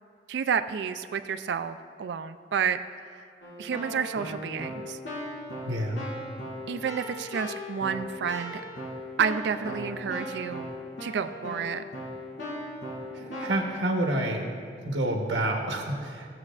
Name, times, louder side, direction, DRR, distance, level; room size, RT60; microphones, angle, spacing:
voice 1, 0.3-2.8 3.1-3.2 3.6-5.0 6.7-8.6 9.2-10.7 11.0-11.8, right 7 dB, 65° right, 10 dB, 0.3 m, -30 dB
Keyboard (musical), 3.4-13.7, left 1 dB, 85° left, 2.3 m, -38 dB
voice 2, 5.6-6.0 13.1-14.5 14.8-16.4, right 1 dB, 80° right, 1 dB, 1.0 m, -28 dB
17.0 x 7.6 x 2.4 m, 2.3 s
head